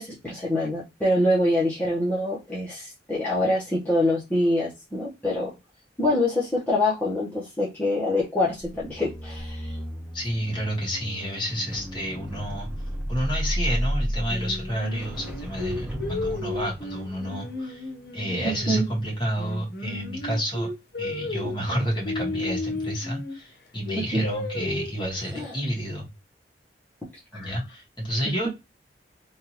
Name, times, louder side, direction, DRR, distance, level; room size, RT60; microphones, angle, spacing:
voice 1, 0.0-5.5 6.0-9.8 18.4-18.8 24.1-24.2 25.3-25.5 27.3-27.5, left 1 dB, 10° left, -8 dB, 1.0 m, -25 dB
sound 1, 8.6-18.9 19.2-19.5, equal, 5° right, 0.6 m, -33 dB
voice 2, 10.1-12.7 13.1-17.9 18.1-20.7 21.0-26.1 27.3-28.5, equal, 25° left, -2 dB, 1.6 m, -30 dB
Singing, 14.3-19.0 19.4-23.4 23.9-25.0, left 2 dB, 60° left, 0.9 m, -33 dB
3.6 x 2.6 x 2.9 m, 0.24 s
head